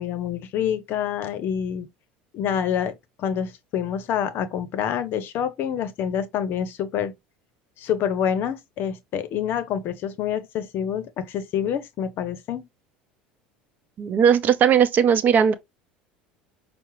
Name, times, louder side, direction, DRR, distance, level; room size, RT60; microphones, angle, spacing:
voice 1, 0.0-1.9 2.3-7.1 7.8-12.7, left 8 dB, 55° left, 0.7 m, -27 dB
voice 2, 14.0-15.5, right 7 dB, 45° right, 0.6 m, -18 dB
5.6 x 2.1 x 3.0 m
hypercardioid pair, 80°, 4 cm